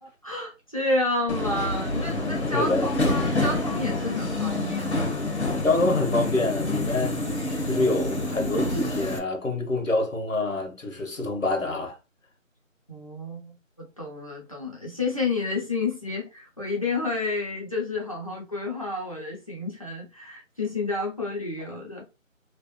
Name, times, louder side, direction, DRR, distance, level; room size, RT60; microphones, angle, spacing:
voice 1, 0.0-5.6 12.9-22.0, left 3 dB, 25° left, 1.1 m, -30 dB
Subway metro underground, 1.3-9.2, left 2 dB, 55° left, 1.4 m, -27 dB
voice 2, 2.5-2.9 5.6-7.2 7.7-12.0, left 2 dB, 75° left, 1.9 m, -26 dB
3.4 x 3.4 x 3.1 m
figure-of-eight pair, 180°, 40 cm